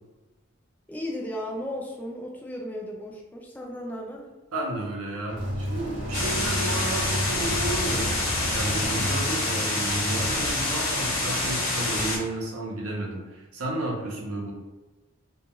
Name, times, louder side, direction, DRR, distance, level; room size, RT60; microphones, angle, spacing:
voice 1, 0.9-4.3, left 1 dB, 10° left, -1 dB, 0.3 m, -35 dB
voice 2, 4.5-8.1 8.5-14.5, right 1 dB, 80° right, -1 dB, 0.6 m, -32 dB
sound 1, 5.3-10.5, equal, 40° right, 0.8 m, -32 dB
sound 2, 6.1-12.2, left 2 dB, 65° left, 0.8 m, -27 dB
2.3 x 2.2 x 2.9 m, 1.1 s
head